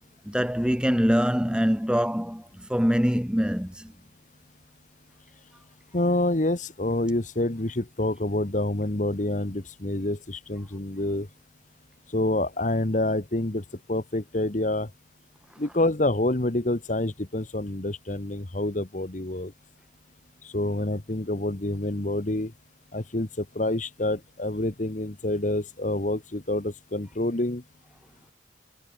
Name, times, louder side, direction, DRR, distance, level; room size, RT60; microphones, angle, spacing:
voice 1, 0.3-3.9, equal, 5° right, 2.0 m, -24 dB
voice 2, 5.9-11.3 12.1-14.9 15.6-19.5 20.4-22.5 22.9-27.6, left 1 dB, 40° left, 1.3 m, -27 dB
head